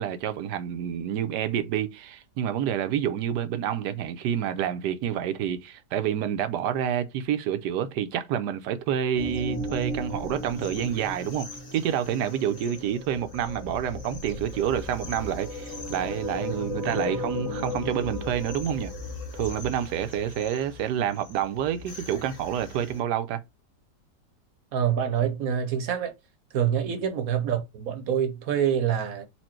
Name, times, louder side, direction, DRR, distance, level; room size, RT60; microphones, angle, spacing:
voice 1, 0.0-18.9 19.3-23.4 26.9-27.0, right 9 dB, 80° right, 1.2 m, -28 dB
sound 1, 9.2-23.0, left 1 dB, 50° left, 1.8 m, -36 dB
voice 2, 24.7-26.1 26.5-29.3, right 9 dB, 60° right, 1.1 m, -26 dB
4.4 x 2.6 x 4.3 m
omnidirectional pair, 1.8 m